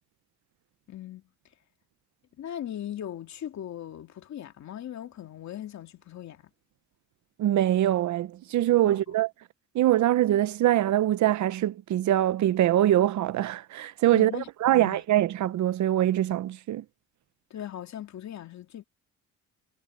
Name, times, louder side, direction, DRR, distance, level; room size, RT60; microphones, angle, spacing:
voice 1, 0.9-1.2 2.4-6.5 8.8-9.1 14.1-15.0 17.5-18.8, left 11 dB, 65° left, 2.7 m, -39 dB
voice 2, 7.4-9.3 9.7-16.8, right 13 dB, 70° right, 0.8 m, -23 dB
cardioid pair, 90°, 30 cm